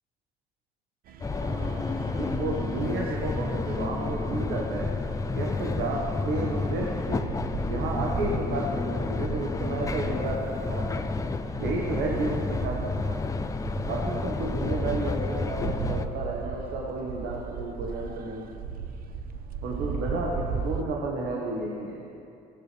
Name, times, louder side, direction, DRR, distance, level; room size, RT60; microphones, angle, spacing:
sound 1, 1.1-20.8, right 5 dB, 60° right, 0.7 m, -38 dB
sound 2, 1.2-16.1, left 3 dB, 20° left, 0.5 m, -30 dB
voice 1, 1.4-5.0 5.3-7.4 7.7-11.1 11.6-13.2 13.8-18.5 19.6-22.1, right 2 dB, 85° right, -2 dB, 1.6 m, -32 dB
17.5 x 13.5 x 3.5 m, 2.6 s
cardioid pair, 110°, 17 cm